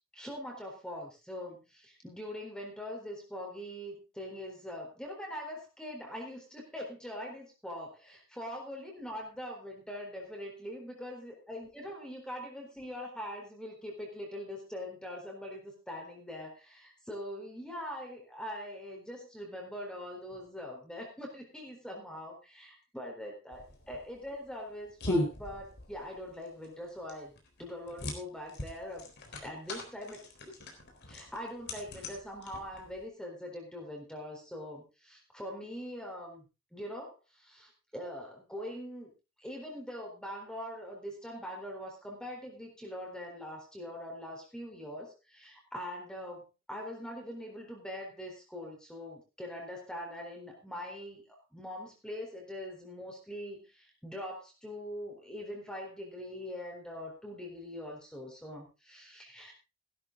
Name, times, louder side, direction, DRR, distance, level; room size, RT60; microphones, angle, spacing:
voice 1, 0.1-27.3 27.6-29.1 29.4-30.2 31.1-36.4 36.7-39.1 39.4-59.5, left 1 dB, 5° left, 0 dB, 3.9 m, -43 dB
sound 1, 23.5-33.0, left 1 dB, 55° left, 4.0 m, -39 dB
16.0 x 12.0 x 3.7 m, 0.29 s
head